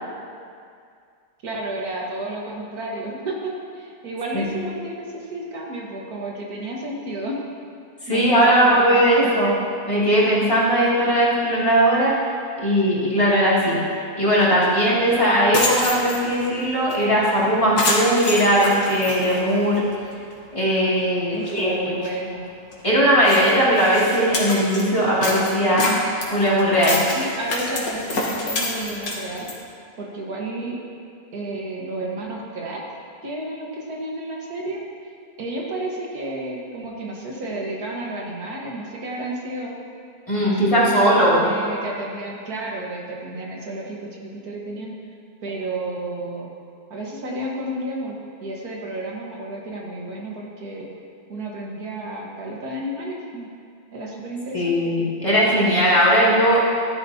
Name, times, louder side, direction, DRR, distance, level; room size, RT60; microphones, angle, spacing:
voice 1, 1.4-7.4 8.1-9.5 21.3-22.5 27.2-29.5 30.0-30.8 31.3-32.8 33.2-34.8 35.4-39.7 40.4-44.9 45.4-46.5 46.9-50.9 51.3-53.5 53.9-54.9, right 1 dB, 70° right, -2 dB, 2.0 m, -31 dB
voice 2, 8.1-9.6 9.9-12.1 12.6-13.8 14.2-19.8 20.5-21.9 22.8-26.0 26.3-27.0 40.3-41.5 54.5-56.8, equal, 20° left, -9 dB, 2.6 m, -18 dB
sound 1, 14.6-14.7 15.1-15.2 15.4-16.4 16.9-17.0 17.3-17.4 17.8-19.9 20.3-20.4 21.0-21.1 21.3-21.6 22.0-22.1 22.7-22.8 23.2-24.9 25.2-29.6, left 2 dB, 75° left, 2.1 m, -27 dB
14.0 x 11.0 x 2.8 m, 2.3 s
omnidirectional pair, 1.7 m